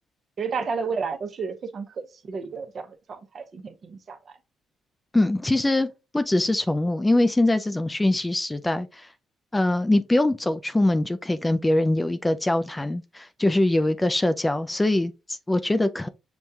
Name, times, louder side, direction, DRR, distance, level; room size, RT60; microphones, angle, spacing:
voice 1, 0.4-4.2, right 5 dB, 50° right, 0.8 m, -32 dB
voice 2, 5.1-5.9 6.1-9.1 9.5-16.1, left 1 dB, 15° left, 0.3 m, -23 dB
6.2 x 2.3 x 2.8 m
cardioid pair, 90°, 0 cm